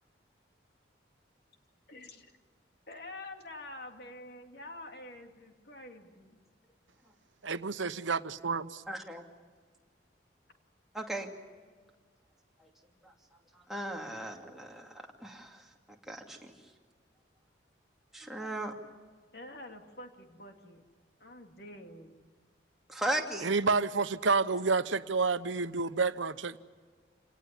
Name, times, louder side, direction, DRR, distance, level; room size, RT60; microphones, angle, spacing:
voice 1, 1.9-2.3 2.9-6.4 19.3-20.8 21.2-22.1, left 2 dB, 55° left, 2.8 m, -47 dB
voice 2, 7.4-8.8 23.4-26.6, right 4 dB, 85° right, 1.0 m, -29 dB
voice 3, 8.9-9.2 10.9-11.3 13.7-15.6 16.1-16.5 18.1-18.7 22.9-23.5, right 1 dB, ahead, 2.5 m, -36 dB
28.0 x 18.5 x 9.8 m
head